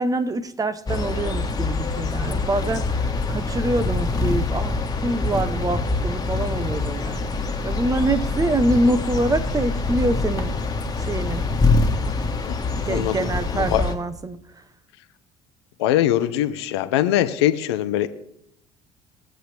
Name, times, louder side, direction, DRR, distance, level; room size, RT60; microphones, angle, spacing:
voice 1, 0.0-7.3 7.6-10.6 11.0-11.4 12.8-14.4, right 2 dB, 25° right, 1.1 m, -25 dB
sound 1, 0.9-13.9, left 3 dB, 30° left, 1.6 m, -25 dB
voice 2, 15.8-18.1, left 12 dB, 85° left, 0.8 m, -21 dB
21.5 x 7.8 x 3.5 m
hypercardioid pair, 60°, 14 cm